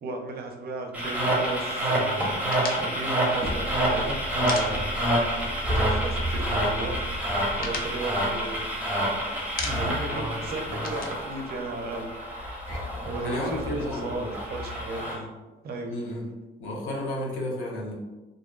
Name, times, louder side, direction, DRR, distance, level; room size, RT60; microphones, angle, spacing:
voice 1, 0.0-2.4 2.8-4.9 5.7-7.0 7.6-8.6 9.6-12.1 12.4-12.6 13.0-14.2 14.5-15.3 15.6-15.9, right 2 dB, 50° right, 3 dB, 0.5 m, -35 dB
sound 1, 0.9-15.2, right 1 dB, 5° right, 0.7 m, -28 dB
sound 2, 2.5-5.3 5.6-5.7 6.0-6.7 7.1-9.0 9.4-10.1 10.4-12.2, left 3 dB, 50° left, 0.4 m, -37 dB
sound 3, 3.4-14.9, equal, 25° left, 0.7 m, -35 dB
voice 2, 10.1-10.9 13.2-14.3 15.9-16.3 16.6-17.9, left 1 dB, 80° left, -2 dB, 0.7 m, -32 dB
2.5 x 2.2 x 2.3 m, 1.2 s
cardioid pair, 90°, 20 cm